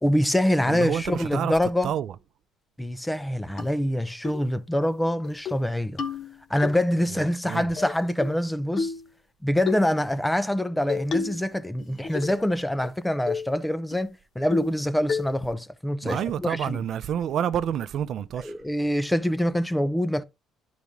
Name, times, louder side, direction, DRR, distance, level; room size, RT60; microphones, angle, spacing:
voice 1, 0.0-1.9 2.8-6.0 6.5-8.9 9.4-16.8 18.4-20.2, left 1 dB, 5° left, 0.5 m, -25 dB
voice 2, 0.7-1.5 1.8-2.1 7.4-7.7 16.0-18.5, right 9 dB, 60° right, 0.5 m, -28 dB
sound 1, 3.6-3.7 4.2-4.4 4.8-4.9 5.2-5.6 6.0-6.7 7.8-8.4 8.8-9.1 9.7-9.9 10.9-11.5 11.8-12.5 12.8-12.9 13.3-13.5 13.9-14.0 14.5-14.8 15.1-15.5, left 5 dB, 45° left, 1.1 m, -30 dB
11.0 x 4.1 x 3.6 m
cardioid pair, 115°, 0 cm